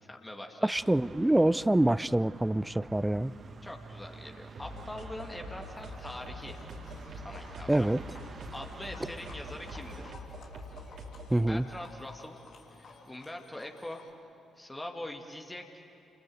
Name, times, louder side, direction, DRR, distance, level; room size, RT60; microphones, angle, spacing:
voice 1, 0.0-0.7 3.6-6.6 7.1-7.9 8.5-10.1 11.5-12.4 12.7-14.0 14.6-15.8, left 1 dB, 15° left, 2 dB, 2.2 m, -43 dB
voice 2, 0.6-3.3 7.7-8.0 11.3-11.7, right 1 dB, 10° right, 20 dB, 0.5 m, -26 dB
sound 1, 0.7-10.1, right 4 dB, 45° right, 1.3 m, -49 dB
sound 2, 4.5-11.4, equal, 60° right, 3.6 m, -45 dB
Livestock farm animals working animals, 5.5-14.1, left 4 dB, 60° left, 3.2 m, -54 dB
29.5 x 21.0 x 7.8 m, 2.8 s
figure-of-eight pair, 40°, 0 cm